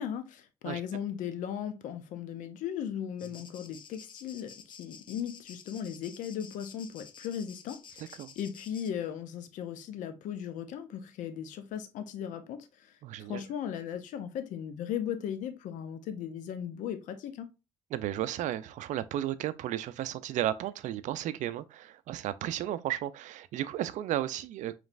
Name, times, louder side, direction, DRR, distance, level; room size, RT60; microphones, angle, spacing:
voice 1, 0.0-7.8 8.1-12.9 13.3-17.5, left 9 dB, 80° left, 0.6 m, -37 dB
sound 1, 3.2-8.9, left 6 dB, 40° left, 0.5 m, -51 dB
voice 2, 8.0-8.3 13.0-13.4 17.9-24.7, right 12 dB, 70° right, 0.4 m, -34 dB
5.1 x 3.2 x 2.5 m
cardioid pair, 110°, 13 cm